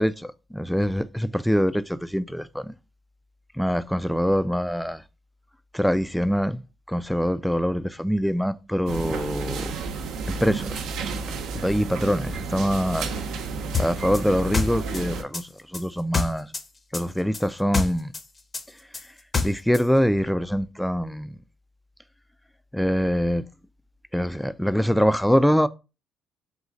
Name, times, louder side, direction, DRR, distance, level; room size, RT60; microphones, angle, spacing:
voice 1, 0.0-2.7 3.5-5.0 5.7-6.6 6.9-9.7 10.3-10.8 11.5-13.2 13.8-16.5 16.9-18.1 19.4-21.4 22.7-23.4 24.1-25.7, equal, ahead, 0.3 m, -24 dB
sound 1, 8.9-15.2, right 4 dB, 80° right, 0.5 m, -31 dB
sound 2, 13.7-16.7 16.9-19.9, left 4 dB, 35° left, 0.7 m, -27 dB
3.9 x 2.4 x 3.9 m
supercardioid pair, 80°, 0 cm